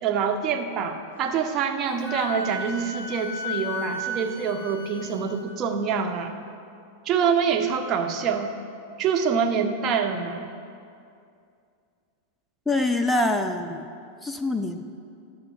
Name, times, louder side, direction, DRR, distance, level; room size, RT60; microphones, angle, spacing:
voice 1, 0.0-6.3 7.1-8.5 9.0-10.5, right 6 dB, 35° right, 5 dB, 0.7 m, -25 dB
Wind instrument woodwind instrument, 2.0-5.5, left 2 dB, 55° left, 0.6 m, -34 dB
voice 2, 12.7-13.9 14.2-14.9, left 2 dB, 5° left, 5 dB, 0.4 m, -25 dB
18.5 x 6.6 x 2.4 m, 2.4 s
figure-of-eight pair, 90°, 0 cm